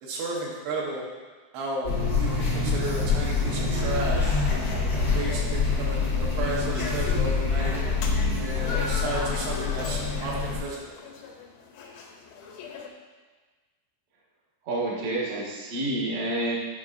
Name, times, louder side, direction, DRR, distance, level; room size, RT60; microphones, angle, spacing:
voice 1, 0.0-1.0 1.5-1.9 2.2-4.5 4.7-7.8 8.4-11.0, right 2 dB, 75° right, -4 dB, 3.0 m, -33 dB
sound 1, 1.8-10.6, left 4 dB, 65° left, 1.1 m, -26 dB
sound 2, 4.2-12.9, left 4 dB, 90° left, 3.1 m, -41 dB
voice 2, 14.6-16.6, right 1 dB, 60° right, -5 dB, 2.0 m, -28 dB
10.5 x 5.5 x 2.5 m, 1.3 s
omnidirectional pair, 5.0 m